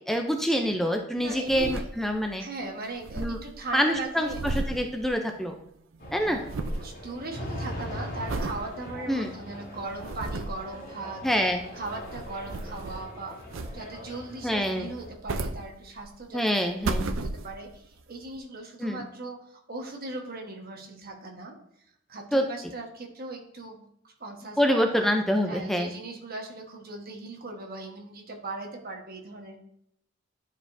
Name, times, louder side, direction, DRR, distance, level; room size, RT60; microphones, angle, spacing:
voice 1, 0.1-2.5 3.2-3.4 3.7-5.6 6.1-6.4 9.1-9.3 11.2-11.6 14.4-14.9 16.3-17.1 18.8-19.0 22.3-22.4 24.6-25.9, equal, ahead, 4 dB, 0.5 m, -26 dB
voice 2, 1.2-1.9 2.4-4.4 6.2-6.5 6.8-11.2 11.7-13.4 13.7-21.6 22.1-23.8 24.0-25.1 25.5-29.6, right 2 dB, 50° right, 2 dB, 1.3 m, -39 dB
sound 1, 1.2-2.4 2.6-2.7 2.9-5.7 5.9-6.9 7.4-7.7 8.3-8.6 9.2-9.3 9.8-10.7 11.7-13.1 13.5-14.1 14.9-16.2 16.6-17.8 18.4-18.5, right 2 dB, 70° right, 0.5 m, -34 dB
sound 2, 6.0-15.1, left 1 dB, 45° left, 2.3 m, -41 dB
11.0 x 4.9 x 2.6 m, 0.76 s
head